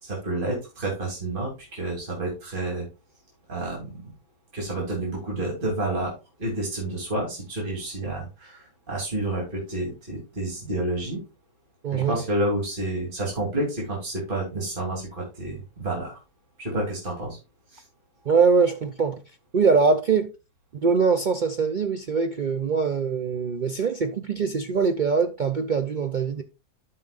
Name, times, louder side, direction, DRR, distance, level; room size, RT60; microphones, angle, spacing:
voice 1, 0.0-2.8 3.5-4.1 4.5-6.1 6.4-11.2 11.9-16.2 16.6-17.4 17.7-17.8, right 1 dB, 35° right, 3.1 m, -29 dB
voice 2, 11.8-12.2 18.3-19.2 19.5-20.3 20.8-26.4, right 5 dB, 60° right, 0.4 m, -22 dB
13.0 x 5.9 x 2.4 m
omnidirectional pair, 1.6 m